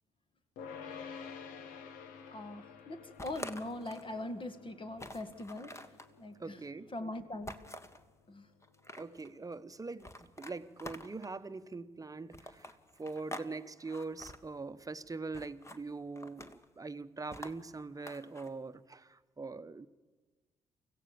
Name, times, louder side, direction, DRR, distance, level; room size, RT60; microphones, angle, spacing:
sound 1, 0.6-11.9, left 6 dB, 75° left, 1.3 m, -52 dB
voice 1, 2.3-5.7 6.2-6.6 6.9-7.6 8.3-8.5, left 1 dB, 35° left, 9 dB, 1.9 m, -41 dB
sound 2, 3.2-4.1 4.5-4.6 5.0-6.1 7.5-8.0 8.6-9.3 10.0-11.4 12.3-13.5 13.8-14.4 15.3-15.8 16.2-16.7 17.3-18.5, left 1 dB, 20° left, 1.6 m, -47 dB
voice 2, 6.4-6.9 9.0-19.9, right 3 dB, 25° right, 13 dB, 1.0 m, -43 dB
24.5 x 15.5 x 7.0 m, 1.3 s
hypercardioid pair, 45°, 14 cm